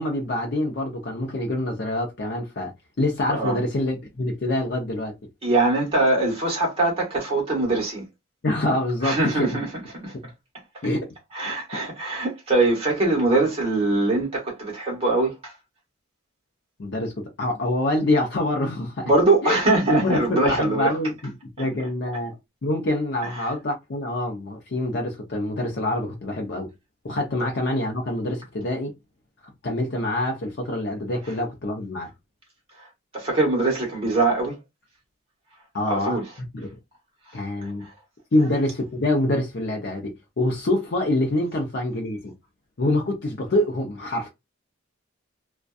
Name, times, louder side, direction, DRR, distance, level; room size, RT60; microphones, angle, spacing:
voice 1, 0.0-5.1 8.4-9.6 10.8-11.1 16.8-19.1 19.4-19.6 19.9-21.3 21.6-22.3 22.6-26.7 27.0-28.9 29.6-32.1 35.7-36.2 36.5-36.7 37.3-37.9 38.3-42.3 42.8-44.3, left 1 dB, 50° left, 0.6 m, -25 dB
voice 2, 3.3-3.6 5.4-8.0 9.0-9.7 9.9-10.1 11.3-15.5 19.0-20.9 21.6-21.7 23.3-23.5 32.8-32.9 33.1-34.6 35.9-36.2 37.6-37.9, right 2 dB, 30° right, 1.1 m, -22 dB
2.5 x 2.2 x 2.2 m
head